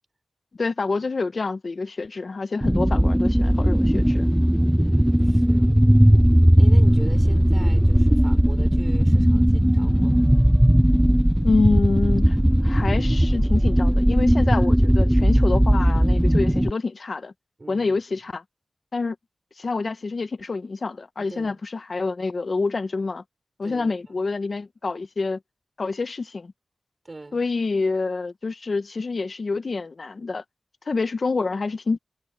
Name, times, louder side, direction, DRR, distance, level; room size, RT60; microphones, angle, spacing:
voice 1, 0.5-4.3 11.4-12.4 12.6-17.3 17.7-18.4 18.9-19.2 19.6-23.2 23.6-25.4 25.8-26.5 27.3-30.4 30.9-32.0, left 3 dB, 55° left, 0.8 m, -27 dB
sound 1, 2.6-16.7, equal, 5° right, 0.3 m, -18 dB
voice 2, 4.5-5.7 6.6-10.3 17.6-18.0 21.2-21.6 23.6-24.2 27.0-27.4, right 2 dB, 35° right, 5.8 m, -42 dB
wide cardioid pair, 105°, 0 cm